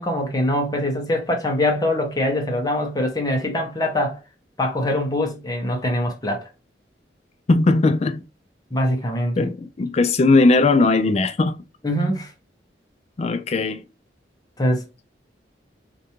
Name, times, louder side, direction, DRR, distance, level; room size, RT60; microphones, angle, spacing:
voice 1, 0.0-4.2 4.6-6.5 8.7-9.4 11.8-12.3 14.6-14.9, left 1 dB, 20° left, 0.8 m, -23 dB
voice 2, 7.5-8.2 9.4-11.6 13.2-13.8, left 3 dB, 35° left, 0.4 m, -18 dB
4.4 x 2.5 x 2.8 m
head